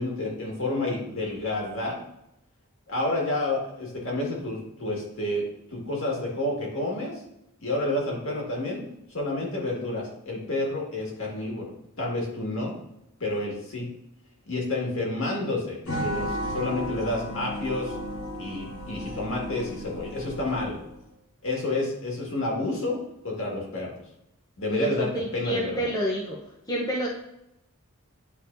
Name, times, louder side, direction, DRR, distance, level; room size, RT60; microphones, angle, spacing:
voice 1, 0.0-2.0 2.9-5.5 5.7-7.1 7.6-8.8 9.1-11.7 12.0-12.7 13.2-13.9 14.5-17.9 18.4-20.8 21.4-23.9 24.6-25.9, left 2 dB, 65° left, -2 dB, 2.0 m, -29 dB
sound 1, 15.8-21.0, equal, 85° left, 1.7 m, -34 dB
voice 2, 24.7-26.4 26.7-27.1, right 1 dB, 15° left, -3 dB, 0.8 m, -28 dB
9.3 x 4.1 x 2.7 m, 0.85 s
head